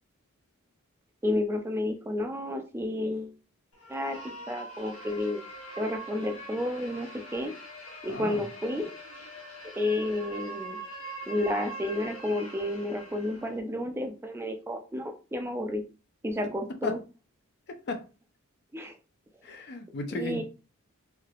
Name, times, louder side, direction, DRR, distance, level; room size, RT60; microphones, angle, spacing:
voice 1, 1.2-3.4 3.9-4.2 4.5-5.4 5.8-7.5 8.0-8.9 9.8-10.8 11.3-15.8 16.2-17.0 18.7-19.0 20.1-20.4, left 1 dB, 10° right, 0.4 m, -31 dB
sound 1, 3.7-13.6, right 1 dB, 75° left, 1.0 m, -43 dB
voice 2, 8.1-8.4 16.8-16.9 17.7-18.0 19.4-20.4, left 2 dB, 50° left, 0.6 m, -35 dB
3.3 x 2.8 x 2.4 m
head